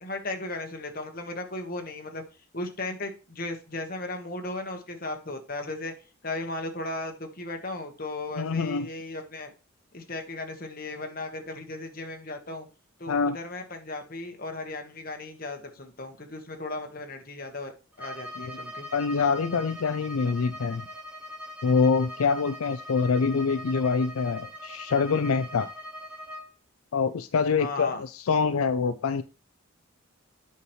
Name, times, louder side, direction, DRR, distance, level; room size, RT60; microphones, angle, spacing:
voice 1, 0.0-2.2 2.5-5.9 6.2-9.5 9.9-12.7 13.0-17.7 18.0-18.9 27.5-28.0, left 2 dB, 40° left, 1.3 m, -36 dB
voice 2, 8.4-8.9 13.1-13.4 18.4-18.5 18.9-20.9 21.6-25.7 26.9-29.2, left 5 dB, 80° left, 0.5 m, -25 dB
Bowed string instrument, 17.9-26.5, equal, 5° right, 2.0 m, -41 dB
8.3 x 5.8 x 3.1 m
head